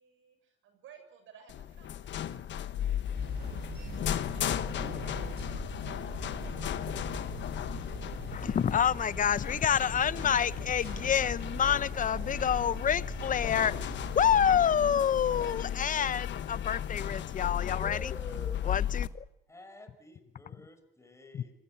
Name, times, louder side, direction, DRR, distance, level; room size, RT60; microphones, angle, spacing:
voice 1, 0.0-5.0 5.5-7.0, right 7 dB, 70° right, 7 dB, 7.2 m, -57 dB
sound 1, 1.5-19.1, left 10 dB, 60° left, 1.3 m, -35 dB
sound 2, 3.1-14.4, right 4 dB, 45° right, 5.9 m, -43 dB
voice 2, 8.3-18.1 18.6-19.1 21.3-21.4, left 8 dB, 40° left, 17 dB, 0.8 m, -28 dB
voice 3, 17.8-18.5 19.5-21.5, left 2 dB, 15° left, 7 dB, 5.9 m, -47 dB
26.5 x 18.0 x 8.5 m, 0.86 s
cardioid pair, 90°, 21 cm